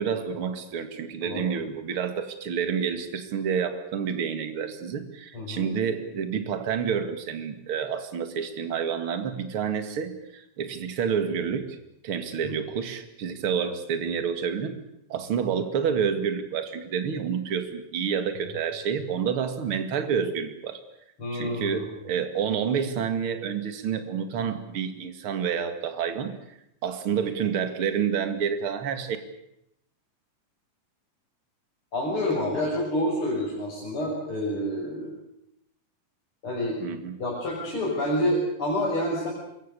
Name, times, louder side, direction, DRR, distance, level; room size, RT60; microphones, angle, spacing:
voice 1, 0.0-11.8 12.0-14.8 15.1-20.8 21.3-26.6 26.8-29.2 36.8-37.2, right 7 dB, 45° right, 8 dB, 2.6 m, -29 dB
voice 2, 5.3-5.7 12.4-12.5 21.2-21.8 31.9-35.1 36.4-36.8 37.2-39.3, left 1 dB, 35° left, -4 dB, 6.8 m, -28 dB
27.0 x 23.5 x 6.9 m, 0.80 s
omnidirectional pair, 3.9 m